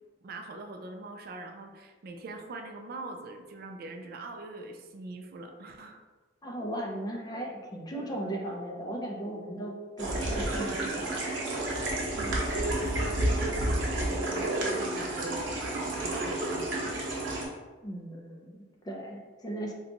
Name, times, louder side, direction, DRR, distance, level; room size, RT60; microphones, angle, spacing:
voice 1, 0.2-6.0 12.2-15.4 15.7-16.8, right 2 dB, 55° right, 4 dB, 0.3 m, -41 dB
voice 2, 6.4-11.2 17.8-19.7, right 1 dB, 20° left, 0 dB, 0.4 m, -37 dB
sound 1, 10.0-17.4, right 1 dB, 75° right, 0.8 m, -30 dB
2.8 x 2.3 x 3.9 m, 1.4 s
head